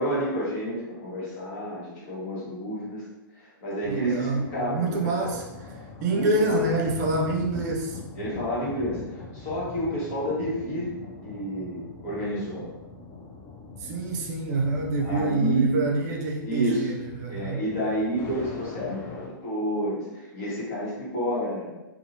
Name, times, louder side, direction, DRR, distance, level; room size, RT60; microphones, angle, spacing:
voice 1, 0.0-3.0 3.4-5.3 6.1-6.6 8.1-10.9 11.2-12.7 15.0-15.8 16.4-16.9 17.3-21.7, equal, 45° left, -6 dB, 1.3 m, -30 dB
sound 1, 3.8-19.3, left 3 dB, 25° left, 0.5 m, -42 dB
voice 2, 3.9-5.4 6.0-8.0 13.8-17.7, right 2 dB, 50° right, 1 dB, 0.5 m, -26 dB
2.7 x 2.4 x 2.8 m, 1.0 s
hypercardioid pair, 140°, 12 cm